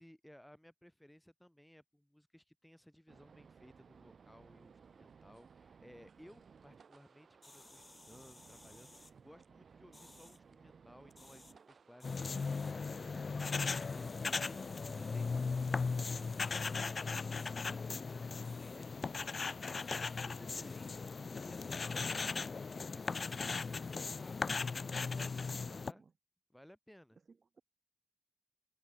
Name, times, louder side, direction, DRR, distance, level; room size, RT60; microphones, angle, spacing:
voice 1, 0.0-24.5 24.8-26.0 26.5-27.2, equal, 5° left, 2.4 m, -60 dB
sound 1, 3.1-15.2, right 6 dB, 75° right, 1.7 m, -60 dB
sound 2, 7.4-9.1 9.9-10.4 11.1-11.5 12.0-12.7 13.7-16.8 17.3-17.5 18.4-18.8 19.3-20.2 20.5-20.9 21.5-22.3 23.0-24.6 25.0-25.8, left 2 dB, 30° left, 5.8 m, -61 dB
sound 3, 12.0-25.9, left 4 dB, 55° left, 0.5 m, -38 dB
voice 2, 25.7-26.1 27.3-27.6, right 4 dB, 55° right, 4.3 m, -63 dB
wide cardioid pair, 110°, 0 cm